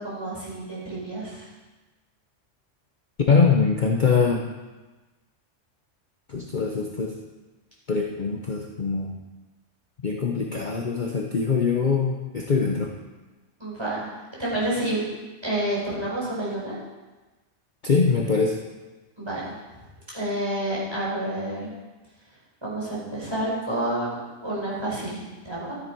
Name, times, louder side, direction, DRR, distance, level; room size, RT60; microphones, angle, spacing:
voice 1, 0.0-1.4 13.6-14.1 14.4-15.0 15.4-16.8 19.2-19.5 20.1-21.7 22.6-25.7, right 1 dB, 20° right, -6 dB, 4.5 m, -29 dB
voice 2, 3.3-4.4 6.3-7.1 7.9-9.1 10.0-12.9 17.8-18.6, left 5 dB, 45° left, 0 dB, 0.9 m, -23 dB
13.0 x 9.8 x 4.6 m, 1.2 s
omnidirectional pair, 1.3 m